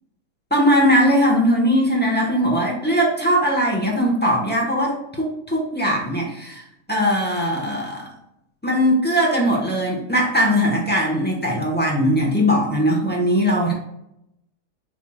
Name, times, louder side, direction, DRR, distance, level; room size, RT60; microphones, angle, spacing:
voice 1, 0.5-6.6 6.9-8.1 8.6-13.7, equal, 5° left, -3 dB, 1.1 m, -20 dB
6.0 x 3.5 x 2.4 m, 0.82 s
omnidirectional pair, 1.7 m